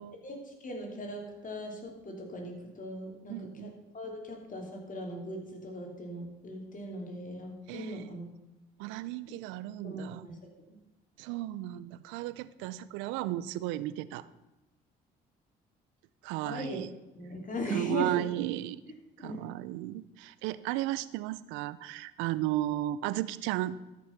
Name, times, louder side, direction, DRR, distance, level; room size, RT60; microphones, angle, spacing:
voice 1, 0.2-3.7 3.9-8.3 9.8-10.4 16.4-16.8 17.1-18.2 19.2-19.4, equal, 45° left, 1 dB, 3.2 m, -39 dB
voice 2, 3.3-3.7 7.7-8.1 8.8-10.3 11.2-14.3 16.2-16.9 17.7-18.8 19.2-23.8, right 15 dB, 85° right, 17 dB, 0.5 m, -34 dB
13.0 x 6.2 x 5.8 m, 1.0 s
supercardioid pair, 60°, 19 cm